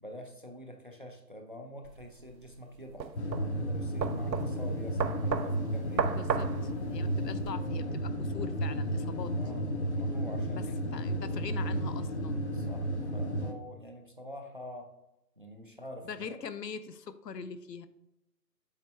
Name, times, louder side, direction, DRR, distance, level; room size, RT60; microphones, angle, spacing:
voice 1, 0.0-6.1 9.3-9.6 9.9-10.8 12.5-14.9 15.4-16.4, left 1 dB, 35° right, 4 dB, 0.5 m, -46 dB
sound 1, 1.8-7.5, right 6 dB, 90° right, 0.7 m, -35 dB
sound 2, 3.2-13.5, equal, 45° left, 0.7 m, -33 dB
voice 2, 6.0-9.3 10.5-10.7 10.9-12.4 16.0-17.9, left 6 dB, 75° left, 13 dB, 0.7 m, -42 dB
7.2 x 4.3 x 3.3 m, 0.87 s
figure-of-eight pair, 155°, 50 cm